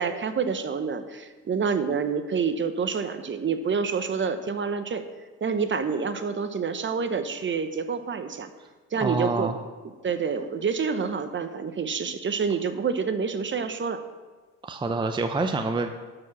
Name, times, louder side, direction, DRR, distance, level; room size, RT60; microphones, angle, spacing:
voice 1, 0.0-5.0 5.4-8.5 8.9-9.5 10.0-14.0, right 5 dB, 40° right, 9 dB, 0.9 m, -27 dB
voice 2, 9.0-9.6 14.6-15.9, right 3 dB, 15° right, 7 dB, 0.6 m, -27 dB
12.5 x 4.7 x 6.1 m, 1.4 s
cardioid pair, 90°, 30 cm